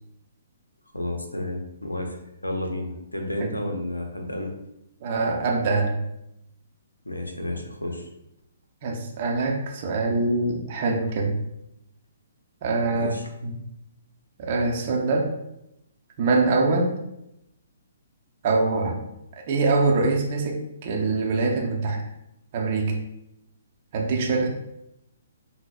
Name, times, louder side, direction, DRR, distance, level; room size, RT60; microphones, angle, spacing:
voice 1, 0.9-2.2 2.4-4.5 7.0-8.1 12.9-13.3, left 1 dB, 80° left, 3 dB, 0.6 m, -31 dB
voice 2, 5.0-6.0 8.8-11.4 12.6-13.1 13.4-13.6 14.4-15.3 16.2-17.0 18.4-19.0 19.4-22.0 22.5-23.0 23.9-24.5, right 3 dB, 40° right, 1 dB, 0.6 m, -24 dB
5.7 x 2.0 x 2.3 m, 0.85 s
figure-of-eight pair, 125°, 0 cm